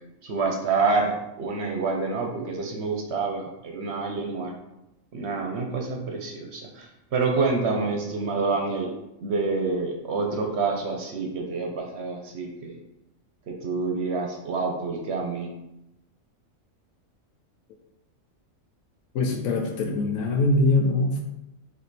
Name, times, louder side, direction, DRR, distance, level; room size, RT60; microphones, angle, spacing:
voice 1, 0.2-4.5 5.1-8.9 9.2-12.8 13.5-15.5, right 4 dB, 60° right, 2 dB, 0.9 m, -27 dB
voice 2, 19.1-21.2, left 2 dB, 85° left, 2 dB, 1.0 m, -23 dB
4.5 x 2.6 x 4.0 m, 0.90 s
omnidirectional pair, 1.4 m